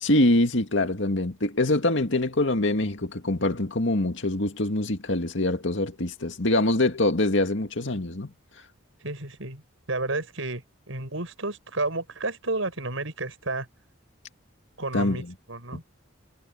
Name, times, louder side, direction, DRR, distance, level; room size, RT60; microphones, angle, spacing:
voice 1, 0.0-8.3 14.9-15.3, left 2 dB, 65° left, 2.3 m, -24 dB
voice 2, 9.0-9.6 9.9-13.7 14.8-15.2 15.5-15.8, right 2 dB, 80° right, 5.8 m, -31 dB
head